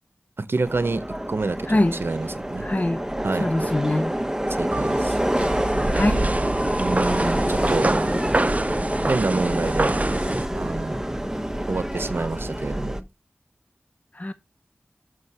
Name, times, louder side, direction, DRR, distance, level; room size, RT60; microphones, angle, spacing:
voice 1, 0.4-2.7 3.2-3.7 4.5-5.2 6.8-7.9 9.1-9.9 10.5-11.0 11.7-13.0, right 3 dB, 75° right, 0.7 m, -28 dB
Subway metro underground, 0.6-13.0, right 1 dB, 10° right, 0.9 m, -26 dB
voice 2, 2.6-3.0 3.4-4.1 5.9-6.2 14.2-14.3, left 1 dB, 40° left, 0.8 m, -23 dB
sound 1, 4.7-10.5, right 2 dB, 40° right, 0.6 m, -27 dB
6.5 x 6.4 x 5.5 m
wide cardioid pair, 50°, 4 cm